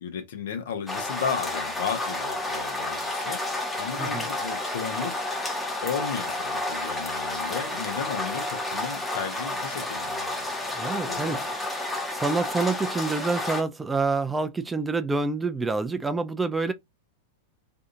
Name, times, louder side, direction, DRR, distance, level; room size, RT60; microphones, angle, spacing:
voice 1, 0.0-3.4 3.8-5.3 5.8-11.5, left 7 dB, 60° left, 0.7 m, -34 dB
sound 1, 0.9-13.6, left 2 dB, 10° left, 0.8 m, -31 dB
voice 2, 10.7-11.5 12.1-16.7, right 3 dB, 10° right, 0.3 m, -27 dB
2.6 x 2.4 x 2.5 m
figure-of-eight pair, 95°, 0 cm